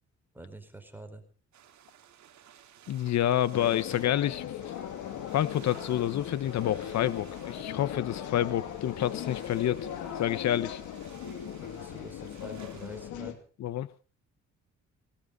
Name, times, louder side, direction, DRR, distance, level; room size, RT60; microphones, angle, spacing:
voice 1, 0.3-1.2 11.6-13.4, right 2 dB, 5° right, 7 dB, 4.6 m, -46 dB
sound 1, 1.5-13.1, right 10 dB, 65° right, 2.2 m, -55 dB
voice 2, 2.9-4.5 5.3-9.9 10.2-10.8 13.6-13.9, left 12 dB, 65° left, 17 dB, 1.0 m, -28 dB
sound 2, 3.5-13.3, left 10 dB, 85° left, 2.6 m, -38 dB
19.0 x 18.0 x 4.0 m, 0.38 s
cardioid pair, 90°, 30 cm